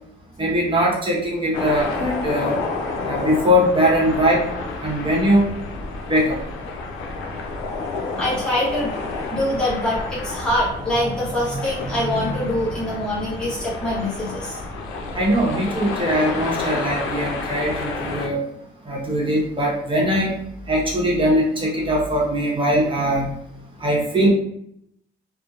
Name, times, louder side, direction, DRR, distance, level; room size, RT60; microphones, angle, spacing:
voice 1, 0.4-2.6 3.1-4.5 4.8-5.5 6.1-6.4 15.1-18.4 18.8-20.3 20.7-23.4 23.8-24.3, equal, 25° right, -4 dB, 0.9 m, -20 dB
sound 1, 1.5-18.3, left 3 dB, 85° left, 0.4 m, -30 dB
voice 2, 8.1-8.9 9.3-14.6, left 1 dB, 5° left, -7 dB, 1.0 m, -24 dB
2.7 x 2.1 x 2.3 m, 0.73 s
cardioid pair, 90°, 20 cm